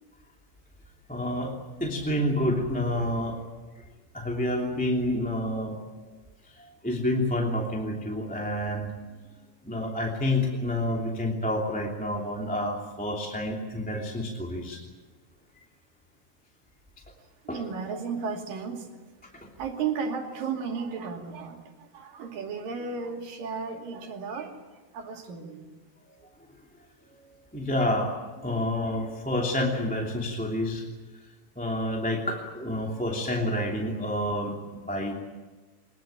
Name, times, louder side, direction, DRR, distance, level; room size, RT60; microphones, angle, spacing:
voice 1, 1.1-1.5 1.8-3.4 4.1-5.8 6.8-8.9 9.6-14.8 17.5-17.6 27.5-28.1 28.4-30.8 31.6-35.1, left 1 dB, 5° left, -1 dB, 2.2 m, -28 dB
voice 2, 17.5-18.9 19.6-25.7, right 5 dB, 65° right, 2 dB, 4.2 m, -34 dB
23.5 x 21.5 x 9.0 m, 1.3 s
omnidirectional pair, 4.3 m